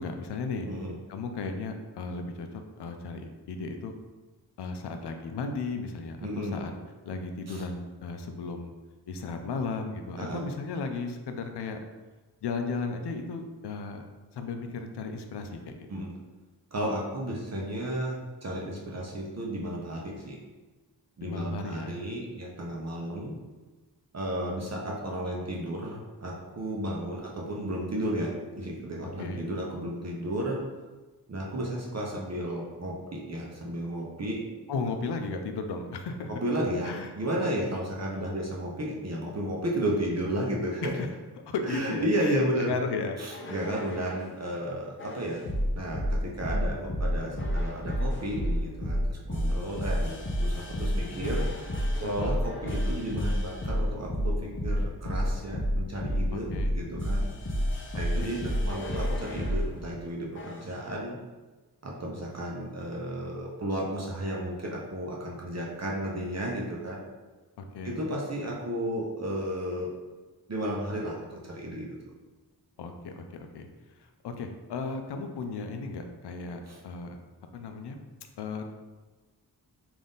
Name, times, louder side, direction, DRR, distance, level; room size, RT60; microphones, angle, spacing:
voice 1, 0.0-0.7 1.1-3.9 4.6-6.7 7.0-8.7 9.1-11.8 12.4-14.0 14.3-15.9 21.2-22.0 29.0-29.4 34.7-36.3 36.9-37.1 40.8-41.1 41.5-43.2 43.4-43.6 52.0-52.5 56.5-56.7 57.9-58.4 67.6-68.0 72.8-77.2 77.5-78.0 78.4-78.6, left 4 dB, 75° left, 5 dB, 0.5 m, -35 dB
voice 2, 0.7-1.0 6.2-6.6 7.5-7.6 10.2-10.4 15.9-16.1 16.7-20.4 21.2-23.3 24.1-30.6 31.3-34.5 36.3-41.0 41.6-42.7 43.2-45.4 45.7-57.3 58.0-61.2 61.8-67.0 67.8-69.9 70.5-72.0 76.7-76.8, right 1 dB, 40° right, -2 dB, 0.6 m, -33 dB
sound 1, 43.3-44.3 45.0-59.7 60.3-60.7, equal, 30° left, 0.6 m, -29 dB
3.5 x 2.6 x 3.8 m, 1.2 s
wide cardioid pair, 75°, 40 cm